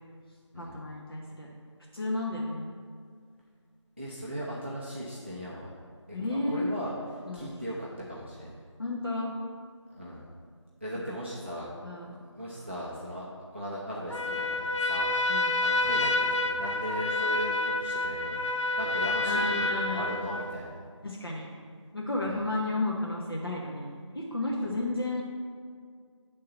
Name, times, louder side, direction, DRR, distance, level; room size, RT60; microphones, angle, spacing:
voice 1, 0.6-1.5 1.9-2.7 6.1-6.7 7.3-7.5 8.8-9.3 11.1-11.2 11.8-12.1 15.3-15.5 19.2-20.0 21.0-21.5 21.9-23.9 24.1-25.2, left 2 dB, 50° left, -3 dB, 1.0 m, -32 dB
voice 2, 4.0-5.7 6.1-8.6 9.9-10.3 10.8-11.7 12.3-16.1 16.4-20.8 22.3-22.4 24.6-24.8, equal, 25° right, -6 dB, 0.5 m, -38 dB
Trumpet, 14.1-20.6, left 2 dB, 75° left, 0.7 m, -28 dB
9.2 x 3.7 x 5.3 m, 2.1 s
figure-of-eight pair, 170°, 16 cm